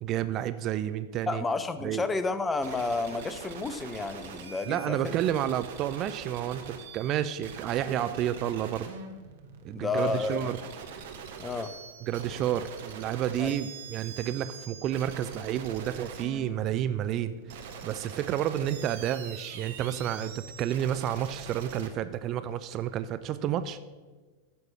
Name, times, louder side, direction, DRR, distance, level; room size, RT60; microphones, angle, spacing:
voice 1, 0.0-1.4 1.8-2.0 4.7-8.9 9.6-10.6 12.0-23.8, right 11 dB, 35° right, 13 dB, 0.4 m, -30 dB
voice 2, 1.3-5.2 9.7-10.5 11.4-11.7 13.4-13.5, left 3 dB, 15° left, 11 dB, 0.6 m, -31 dB
sound 1, 2.6-21.9, right 6 dB, 55° right, 1.0 m, -43 dB
9.7 x 6.1 x 5.7 m, 1.3 s
figure-of-eight pair, 90°, 0 cm